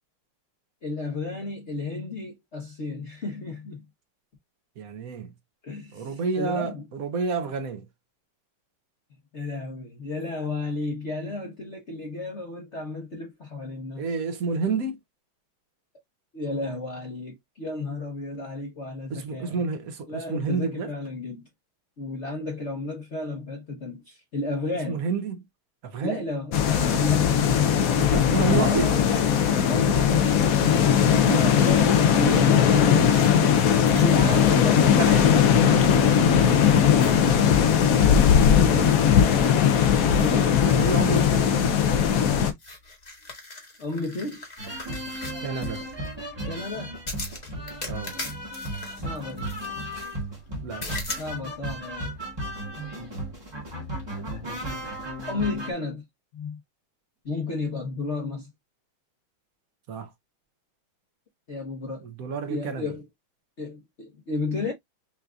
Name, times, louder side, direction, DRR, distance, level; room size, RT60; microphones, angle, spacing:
voice 1, 0.8-3.8 5.6-6.8 9.3-14.0 16.3-19.6 20.1-21.5 22.0-25.0 26.0-27.9 28.5-30.8 31.3-33.5 33.9-34.9 35.8-36.5 38.6-39.2 40.1-40.7 43.8-44.4 46.4-47.0 49.0-49.5 51.2-52.1 55.3-56.0 56.3-56.6 57.2-58.5 61.5-62.0 62.5-63.0 63.6-64.7, left 3 dB, 45° left, 1.0 m, -32 dB
voice 2, 4.8-5.3 5.9-7.9 10.1-10.3 10.6-10.7 14.0-15.0 19.1-21.0 24.9-25.5 25.8-26.2 27.9-28.9 34.2-36.6 40.3-41.8 45.4-45.9 47.8-48.2 50.6-50.9 59.9-60.1 62.0-62.9, right 4 dB, 60° right, 0.9 m, -30 dB
sound 1, 26.5-42.5, left 8 dB, 75° left, 0.8 m, -19 dB
sound 2, 33.0-36.2 36.6-37.9 38.2-39.7 40.1-46.1 47.0-50.2 50.8-51.3, left 2 dB, 25° left, 1.0 m, -41 dB
sound 3, 44.6-55.7, right 1 dB, 15° right, 1.0 m, -35 dB
5.7 x 2.6 x 2.3 m
omnidirectional pair, 2.2 m